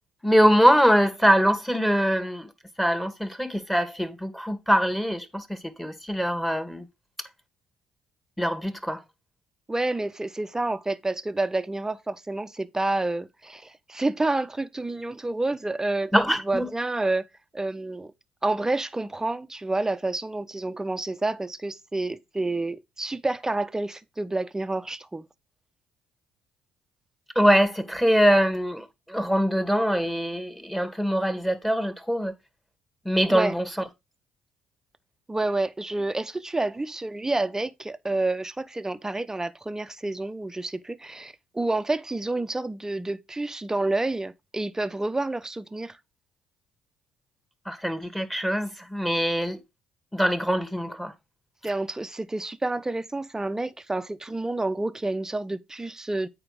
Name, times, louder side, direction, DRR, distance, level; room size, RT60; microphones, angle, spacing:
voice 1, 0.2-2.5 2.8-6.9 8.4-9.0 16.1-16.7 27.3-32.3 33.0-33.7 47.6-49.6 50.1-51.1, equal, 5° left, 1.8 m, -23 dB
voice 2, 9.7-17.3 17.5-18.1 18.4-25.2 33.3-33.5 35.3-46.0 51.6-56.3, right 2 dB, 15° right, 0.9 m, -29 dB
8.9 x 4.7 x 4.9 m
hypercardioid pair, 55°, 3 cm